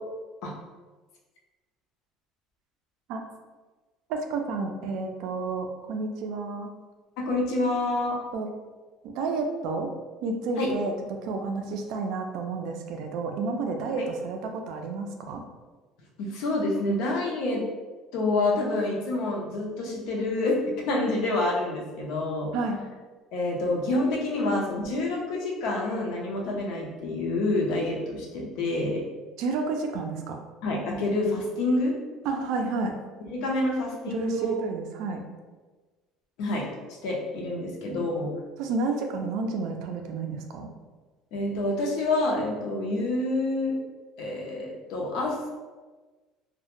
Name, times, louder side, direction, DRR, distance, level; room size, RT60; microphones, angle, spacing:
voice 1, 4.1-6.7 8.3-8.5 9.0-9.9 10.2-15.4 22.5-22.8 29.4-30.4 32.3-33.0 34.1-35.2 38.6-40.7, right 3 dB, 65° right, 4 dB, 0.3 m, -30 dB
voice 2, 7.2-8.2 10.6-10.7 16.2-17.7 18.1-20.6 20.9-22.5 23.3-29.0 30.6-32.0 33.3-34.5 36.4-36.7 37.0-38.3 41.3-43.8 44.2-45.4, left 2 dB, 70° left, -1 dB, 0.5 m, -27 dB
2.1 x 2.0 x 2.9 m, 1.3 s
cardioid pair, 155°, 0 cm